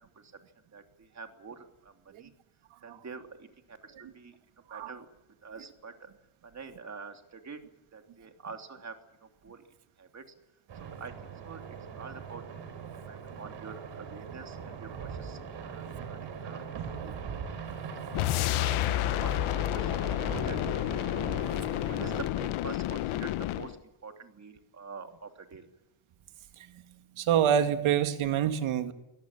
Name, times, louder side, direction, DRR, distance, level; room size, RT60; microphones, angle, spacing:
voice 1, 0.7-2.3 2.8-4.3 4.7-5.1 5.4-6.1 6.4-7.6 7.9-9.6 10.0-10.2 10.8-12.4 13.1-15.4 15.6-17.2 18.4-20.8 21.9-25.7, right 5 dB, 35° right, 5 dB, 3.1 m, -46 dB
sound 1, 10.7-22.3, right 6 dB, 60° right, 5.0 m, -41 dB
sound 2, 18.1-23.7, left 14 dB, 85° left, 1.0 m, -30 dB
voice 2, 27.2-28.9, right 9 dB, 80° right, 8 dB, 2.3 m, -27 dB
23.5 x 17.5 x 7.4 m, 0.94 s
cardioid pair, 110°, 48 cm